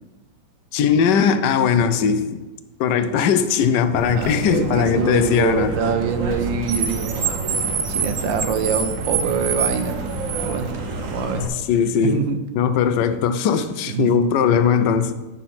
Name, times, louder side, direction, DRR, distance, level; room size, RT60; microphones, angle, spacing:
voice 1, 0.7-2.4 2.8-5.7 11.7-12.2 12.5-15.1, left 7 dB, 70° left, 1.1 m, -19 dB
Car, 3.9-11.5, right 4 dB, 50° right, 1.1 m, -26 dB
Gunshot gunfire, 4.2-4.4 5.4-5.5 6.3-7.4 8.2-8.3, equal, 10° right, 2.0 m, -45 dB
voice 2, 4.2-7.4 7.9-10.0 10.4-10.7 11.0-11.5 12.0-12.4 13.9-14.2, right 6 dB, 80° right, 1.5 m, -24 dB
9.9 x 4.2 x 5.8 m
omnidirectional pair, 2.0 m